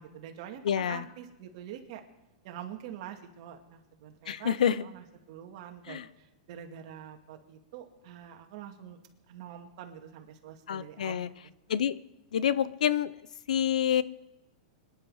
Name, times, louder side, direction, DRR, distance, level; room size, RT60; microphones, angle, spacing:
voice 1, 0.0-2.0 2.4-9.0 9.3-11.5, right 9 dB, 50° right, 4 dB, 2.3 m, -45 dB
voice 2, 0.6-1.0 4.3-4.8 5.9-6.0 10.7-11.3 11.7-12.0 12.3-13.1 13.5-14.0, left 9 dB, 85° left, 18 dB, 0.7 m, -27 dB
25.0 x 10.5 x 4.9 m, 0.96 s
hypercardioid pair, 145°, 4 cm